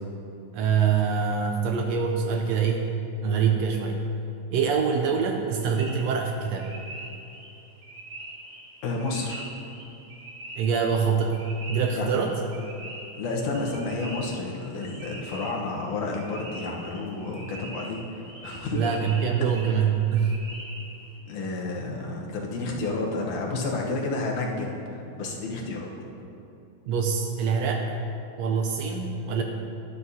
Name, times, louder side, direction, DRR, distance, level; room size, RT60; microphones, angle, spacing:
voice 1, 0.5-2.9 3.2-4.0 4.5-6.7 10.6-11.4 11.7-12.3 18.7-20.4 26.9-27.8 28.4-29.4, right 6 dB, 80° right, 3 dB, 1.6 m, -24 dB
sound 1, 5.5-21.2, right 1 dB, 30° right, 1.6 m, -43 dB
voice 2, 8.8-9.4 11.9-12.1 13.2-18.0 18.4-18.9 21.3-25.9, left 3 dB, 85° left, -1 dB, 2.5 m, -30 dB
11.5 x 10.5 x 2.7 m, 2.7 s
omnidirectional pair, 3.4 m